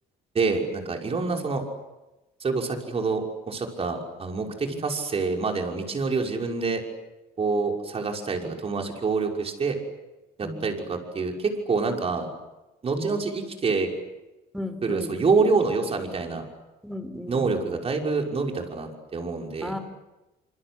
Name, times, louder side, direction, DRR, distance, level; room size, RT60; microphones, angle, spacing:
voice 1, 0.3-1.6 2.4-6.8 7.4-9.8 10.4-12.3 12.8-13.9 14.8-16.4 17.3-19.7, right 4 dB, 35° right, 2 dB, 6.0 m, -26 dB
voice 2, 14.5-15.1 16.8-17.4 19.6-19.8, left 1 dB, ahead, 9 dB, 4.3 m, -35 dB
27.0 x 26.0 x 8.3 m, 1.0 s
cardioid pair, 110°, 17 cm